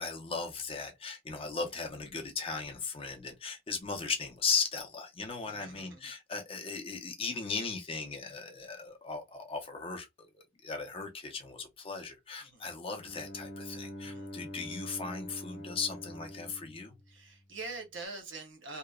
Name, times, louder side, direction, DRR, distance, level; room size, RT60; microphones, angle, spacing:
voice 1, 0.0-17.0, left 5 dB, 30° left, 0.6 m, -37 dB
voice 2, 5.4-6.1 12.5-12.6 14.0-14.3 17.1-18.8, right 3 dB, 65° right, 0.9 m, -44 dB
Bowed string instrument, 13.0-17.8, equal, 65° left, 0.7 m, -45 dB
2.8 x 2.0 x 2.3 m
head